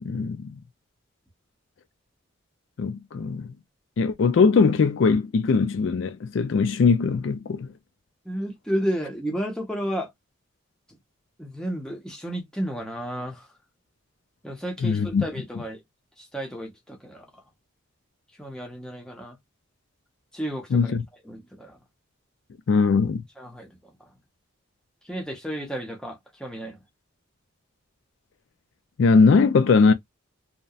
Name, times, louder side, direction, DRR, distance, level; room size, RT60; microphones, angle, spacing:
voice 1, 0.0-0.6 2.8-3.5 4.0-7.7 14.8-15.2 20.7-21.0 22.7-23.2 29.0-29.9, left 4 dB, 60° left, 0.4 m, -20 dB
voice 2, 8.3-10.1 10.9-11.0 11.4-13.5 14.4-15.8 16.2-17.4 18.4-19.4 20.3-20.9 21.2-21.8 23.4-23.7 24.0-24.1 25.0-26.8, equal, 5° left, 0.6 m, -32 dB
2.8 x 2.1 x 2.3 m
head